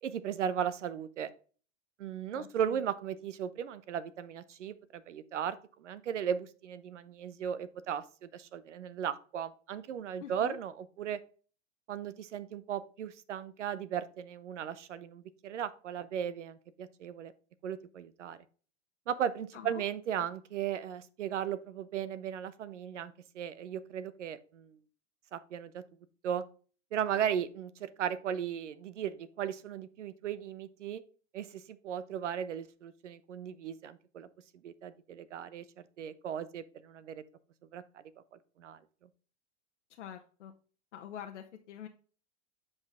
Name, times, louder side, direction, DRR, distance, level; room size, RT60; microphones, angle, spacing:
voice 1, 0.0-1.3 2.0-11.2 11.9-17.3 17.6-18.4 19.1-24.8 25.3-25.8 26.2-26.4 26.9-31.0 31.3-34.3 34.6-37.2 37.7-38.0 38.6-38.8, right 9 dB, 85° right, 15 dB, 0.8 m, -36 dB
voice 2, 2.3-2.8 10.2-10.6 19.5-19.8 39.9-40.5 40.9-41.9, left 9 dB, 80° left, 4 dB, 0.9 m, -46 dB
8.3 x 5.3 x 3.5 m, 0.39 s
hypercardioid pair, 105°, 35 cm